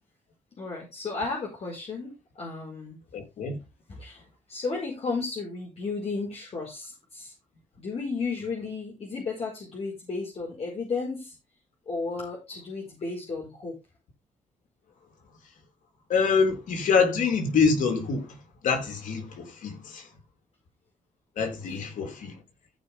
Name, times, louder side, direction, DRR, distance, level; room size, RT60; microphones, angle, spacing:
voice 1, 0.6-3.0 3.9-4.2 4.5-7.3 7.8-11.3 11.9-13.8 21.6-21.8, left 4 dB, 50° left, 4.9 m, -33 dB
voice 2, 3.1-3.6 16.1-18.4 18.6-20.1 21.4-22.4, left 5 dB, 75° left, 3.6 m, -25 dB
15.0 x 5.5 x 3.5 m
cardioid pair, 70°, 13 cm